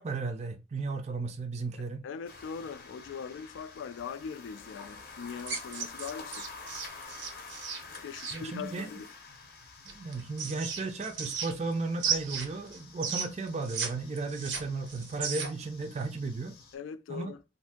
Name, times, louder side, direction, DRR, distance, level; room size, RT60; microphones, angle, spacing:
voice 1, 0.0-2.0 8.3-8.9 9.9-16.5 17.1-17.3, right 3 dB, 35° right, 0.4 m, -35 dB
voice 2, 1.8-6.5 7.9-9.1 16.7-17.4, left 6 dB, 85° left, 0.3 m, -41 dB
sound 1, 2.2-16.7, left 4 dB, 50° left, 0.6 m, -49 dB
sound 2, 5.4-8.4 9.9-11.7 12.0-13.9 14.2-15.7, right 6 dB, 80° right, 0.8 m, -34 dB
2.6 x 2.6 x 3.5 m
head